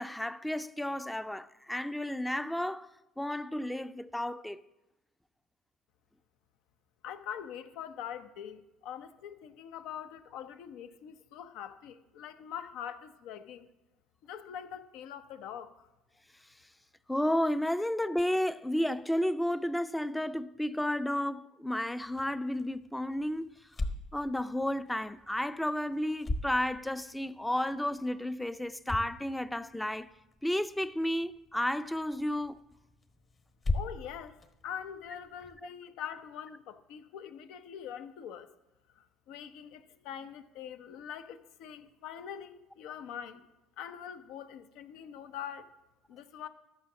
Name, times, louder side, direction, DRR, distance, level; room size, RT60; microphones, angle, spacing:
voice 1, 0.0-2.9 3.2-4.6 17.1-23.5 24.1-30.1 30.4-32.6, left 1 dB, 5° left, 0.5 m, -32 dB
voice 2, 7.0-13.7 14.2-15.9 33.7-34.4 34.6-38.5 39.0-43.5 43.8-45.7 46.1-46.5, left 9 dB, 65° left, 0.7 m, -43 dB
sound 1, 22.0-35.6, left 2 dB, 35° left, 1.3 m, -41 dB
13.0 x 6.2 x 7.1 m
hypercardioid pair, 65°, 0 cm